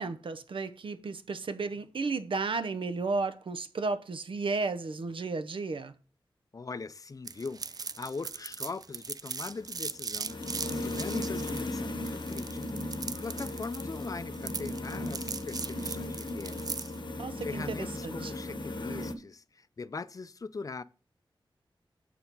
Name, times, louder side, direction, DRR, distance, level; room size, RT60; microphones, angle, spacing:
voice 1, 0.0-5.9 17.2-18.3, right 3 dB, 75° right, 0.8 m, -33 dB
voice 2, 6.5-20.8, left 4 dB, 40° left, 0.4 m, -41 dB
sound 1, 7.3-17.0, right 5 dB, 45° right, 0.4 m, -39 dB
sound 2, 9.5-19.1, left 1 dB, 60° left, 0.9 m, -37 dB
7.3 x 4.8 x 5.3 m
wide cardioid pair, 85°, 9 cm